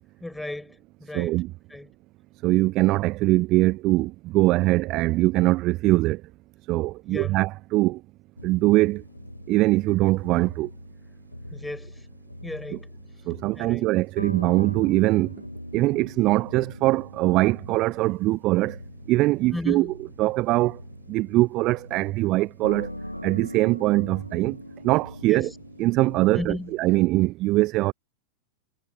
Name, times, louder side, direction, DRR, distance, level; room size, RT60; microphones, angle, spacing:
voice 1, 0.2-1.4 1.7-1.9 7.1-7.4 11.5-12.1 12.4-12.9 13.6-13.9 19.5-19.9 25.2-25.6 26.3-26.7, left 1 dB, 5° left, 6.0 m, -35 dB
voice 2, 1.1-1.5 2.4-6.2 6.7-8.0 8.4-9.0 9.5-10.7 13.3-15.4 15.7-18.8 19.1-19.9 20.2-20.8 21.1-23.0 23.2-24.6 24.8-25.5 25.8-27.9, right 19 dB, 40° right, 0.5 m, -22 dB
sound 1, 8.4-27.1, left 1 dB, 90° left, 2.5 m, -42 dB
figure-of-eight pair, 90°, 0 cm